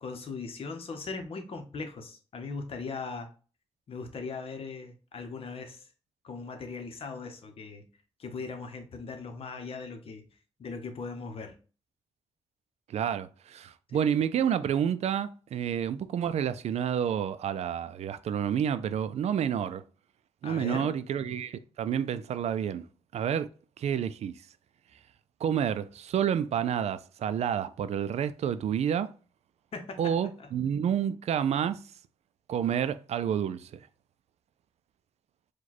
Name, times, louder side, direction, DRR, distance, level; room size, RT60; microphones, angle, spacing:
voice 1, 0.0-3.3 3.9-5.9 6.2-7.9 8.2-10.3 10.6-11.5 13.9-14.0 20.4-20.9 29.7-30.5, left 4 dB, 60° left, 0.8 m, -39 dB
voice 2, 12.9-19.8 20.4-22.9 23.1-23.5 23.8-24.3 25.4-29.1 30.0-31.8 32.5-33.8, right 8 dB, 80° right, 0.4 m, -29 dB
4.9 x 2.3 x 4.0 m
wide cardioid pair, 145°, 11 cm